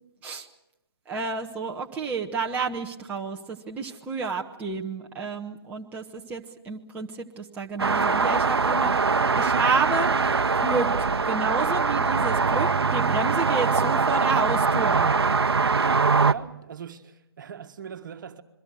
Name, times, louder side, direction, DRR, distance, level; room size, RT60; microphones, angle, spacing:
voice 1, 1.1-10.1 10.5-15.1, right 4 dB, 10° right, 1.2 m, -30 dB
sound 1, 7.8-16.3, right 4 dB, 75° right, 0.9 m, -22 dB
voice 2, 16.2-18.4, right 7 dB, 50° right, 1.6 m, -40 dB
27.5 x 22.5 x 6.4 m
figure-of-eight pair, 140°, 13 cm